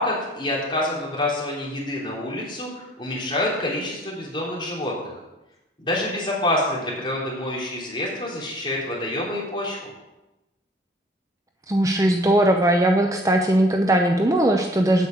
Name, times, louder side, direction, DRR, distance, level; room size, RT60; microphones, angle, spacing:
voice 1, 0.0-5.1 5.8-9.9, left 1 dB, 30° left, -5 dB, 3.2 m, -27 dB
voice 2, 11.7-15.1, right 1 dB, 20° right, 3 dB, 0.7 m, -19 dB
8.4 x 6.5 x 7.9 m, 1.0 s
head